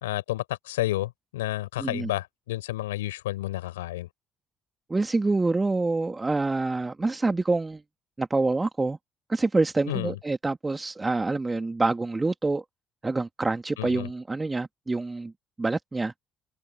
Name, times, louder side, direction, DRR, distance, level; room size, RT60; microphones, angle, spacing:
voice 1, 0.0-4.1 9.9-10.2 13.8-14.1, left 16 dB, 80° left, 4.3 m, -31 dB
voice 2, 1.8-2.1 4.9-7.8 8.2-9.0 9.3-12.6 13.0-15.3 15.6-16.1, right 3 dB, 20° right, 2.1 m, -26 dB
figure-of-eight pair, 50°, 0 cm